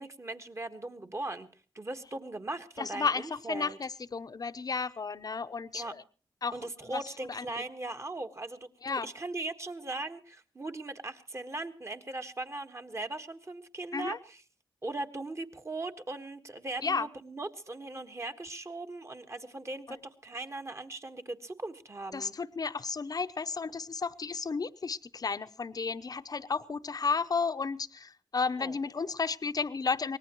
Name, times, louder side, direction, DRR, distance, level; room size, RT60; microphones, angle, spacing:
voice 1, 0.0-1.5 1.7-3.8 5.7-5.9 6.5-14.4 14.8-22.3 28.6-28.8, right 2 dB, 30° right, 7 dB, 1.5 m, -39 dB
voice 2, 2.8-6.0 6.4-6.6 6.9-7.0 7.3-7.4 8.8-9.1 13.9-14.2 16.8-17.1 22.1-30.2, left 4 dB, 45° left, 11 dB, 0.8 m, -33 dB
23.5 x 18.5 x 3.0 m, 0.36 s
cardioid pair, 55°, 9 cm